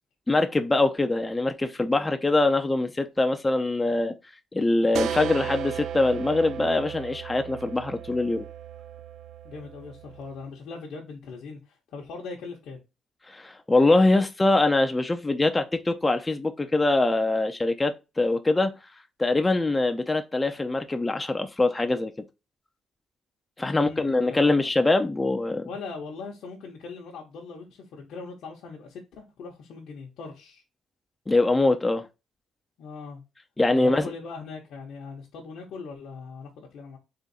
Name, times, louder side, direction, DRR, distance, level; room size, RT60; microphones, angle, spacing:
voice 1, 0.3-4.1 4.5-8.5 13.3-18.7 19.2-22.1 23.6-25.7 31.3-32.1 33.6-34.1, left 2 dB, 20° left, 0.5 m, -23 dB
sound 1, 4.9-10.4, right 9 dB, 80° right, 0.3 m, -36 dB
voice 2, 9.4-12.8 23.6-24.6 25.6-30.6 32.8-33.2 33.7-37.0, left 4 dB, 75° left, 0.9 m, -40 dB
3.7 x 2.5 x 4.0 m
cardioid pair, 90°, 0 cm